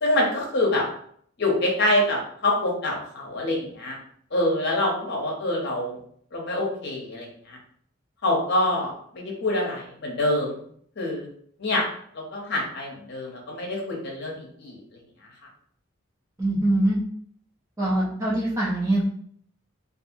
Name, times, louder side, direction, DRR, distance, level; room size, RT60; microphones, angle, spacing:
voice 1, 0.0-0.8 1.4-4.0 4.3-6.0 6.3-7.6 8.2-10.6 11.0-11.3 11.6-11.8 12.1-15.0, left 1 dB, 55° left, -2 dB, 0.7 m, -26 dB
voice 2, 16.4-17.0 17.8-19.0, right 1 dB, 15° right, -6 dB, 0.6 m, -23 dB
2.7 x 2.5 x 2.6 m, 0.63 s
head